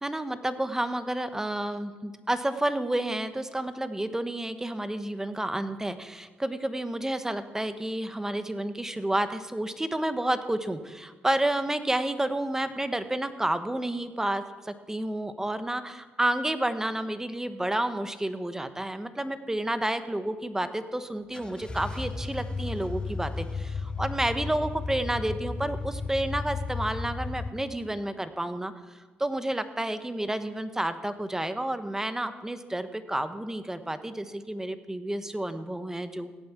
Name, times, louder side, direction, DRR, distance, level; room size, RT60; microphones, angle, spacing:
voice 1, 0.0-36.3, right 1 dB, 10° right, 10 dB, 1.2 m, -30 dB
sound 1, 21.3-27.5, left 3 dB, 20° left, 0.9 m, -34 dB
16.5 x 8.6 x 6.1 m, 1.3 s
supercardioid pair, 60°, 4 cm